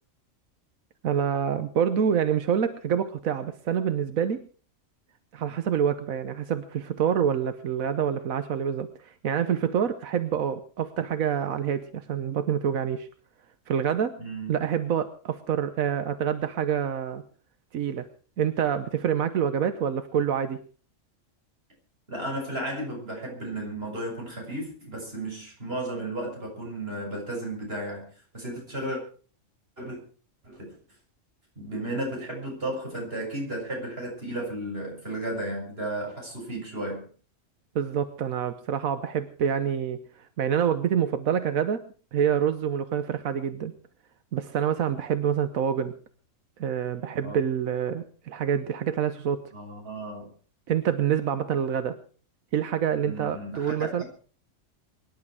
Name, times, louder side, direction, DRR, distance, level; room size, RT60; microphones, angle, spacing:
voice 1, 1.0-4.4 5.3-13.1 13.7-14.2 14.5-17.2 17.7-18.1 18.4-20.6 37.7-41.8 42.1-43.7 44.3-45.9 46.6-49.4 50.7-52.0 52.5-54.0, right 8 dB, 90° right, 10 dB, 1.4 m, -27 dB
voice 2, 14.2-14.5 22.1-28.1 28.3-29.0 29.8-30.0 30.4-30.8 31.6-37.1 47.0-47.3 49.5-50.3 53.0-54.1, right 1 dB, 45° right, 0 dB, 7.5 m, -34 dB
24.0 x 11.0 x 4.8 m, 0.40 s
omnidirectional pair, 1.4 m